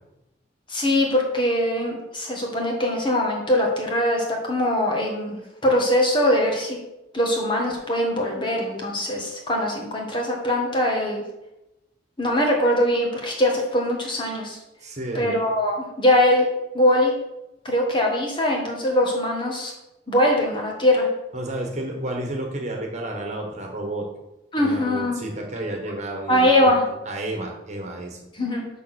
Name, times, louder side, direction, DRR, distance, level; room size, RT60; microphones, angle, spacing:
voice 1, 0.7-6.8 7.1-11.2 12.2-14.6 15.1-16.4 16.7-17.1 17.6-19.7 20.1-21.1 24.5-25.2 26.3-26.8 28.3-28.6, left 1 dB, 25° left, 0 dB, 1.8 m, -22 dB
voice 2, 14.8-15.3 21.3-24.1 24.6-26.8 27.0-28.2, right 1 dB, 40° right, 1 dB, 1.6 m, -31 dB
6.8 x 6.0 x 6.4 m, 0.92 s
head